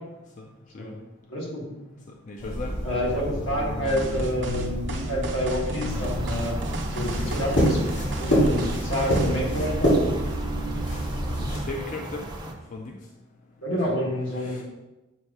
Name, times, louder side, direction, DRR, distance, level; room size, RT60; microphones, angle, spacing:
voice 1, 1.3-1.6 2.8-6.6 6.9-7.8 8.1-10.0 13.6-14.6, equal, 80° left, -4 dB, 1.8 m, -28 dB
voice 2, 2.3-2.8 7.0-7.2 11.3-12.3 12.7-13.0 13.9-14.0 14.4-14.6, left 3 dB, 40° left, 1 dB, 0.4 m, -36 dB
sound 1, 2.4-11.6, equal, 60° left, 2.1 m, -27 dB
sound 2, 3.8-9.4, right 3 dB, 60° right, 0.7 m, -37 dB
sound 3, 5.9-12.5, right 1 dB, 20° right, 0.6 m, -36 dB
7.4 x 2.7 x 4.9 m, 1.0 s
head